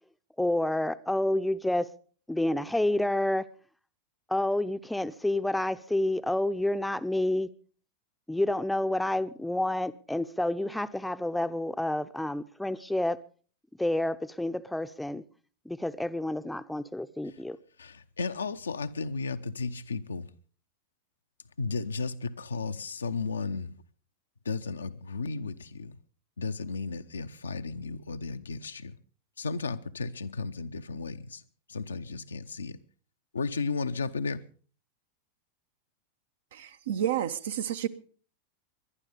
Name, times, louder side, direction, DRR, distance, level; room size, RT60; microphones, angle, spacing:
voice 1, 0.4-1.9 2.3-3.5 4.3-7.5 8.3-13.2 13.8-15.2 15.6-17.6, left 1 dB, 5° left, 0.8 m, -29 dB
voice 2, 17.8-20.3 21.6-23.7 24.4-26.0 26.4-29.0 29.4-31.4 31.7-32.8 33.3-34.4, left 4 dB, 70° left, 0.8 m, -34 dB
voice 3, 36.5-37.9, right 10 dB, 60° right, 1.0 m, -30 dB
21.0 x 11.5 x 5.3 m
figure-of-eight pair, 90°, 0 cm